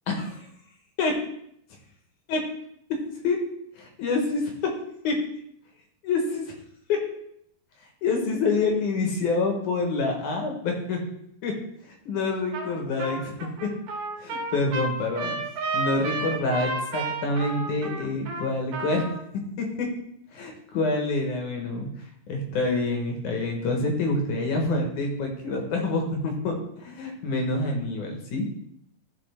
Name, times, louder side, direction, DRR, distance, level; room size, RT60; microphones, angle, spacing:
voice 1, 0.1-0.5 1.0-1.2 2.3-2.4 2.9-3.0 3.2-3.4 3.8-4.7 5.0-5.3 6.0-6.5 6.9-7.1 8.0-11.0 11.4-11.6 11.8-13.3 13.6-13.7 14.2-15.4 15.7-19.1 19.6-19.9 20.3-21.9 22.3-28.5, left 3 dB, 65° left, 2 dB, 2.6 m, -27 dB
Trumpet, 12.5-12.7 13.0-19.2, right 3 dB, 80° right, 2.9 m, -32 dB
14.5 x 4.9 x 3.4 m, 0.73 s
omnidirectional pair, 4.0 m